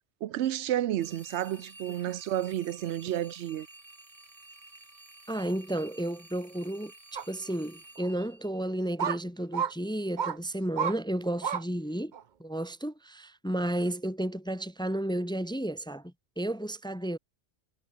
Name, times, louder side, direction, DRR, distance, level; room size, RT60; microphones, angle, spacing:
voice 1, 0.2-3.7, right 12 dB, 85° right, 0.9 m, -31 dB
sound 1, 1.0-9.2, right 2 dB, 30° right, 2.7 m, -52 dB
voice 2, 5.3-12.1 12.4-17.2, right 1 dB, 5° left, 0.7 m, -32 dB
sound 2, 7.2-7.3 8.0-8.1 9.0-9.2 9.5-9.7 10.2-10.4 10.8-11.0 11.4-11.6 12.1-12.2, right 7 dB, 50° right, 0.8 m, -30 dB
omnidirectional pair, 1.1 m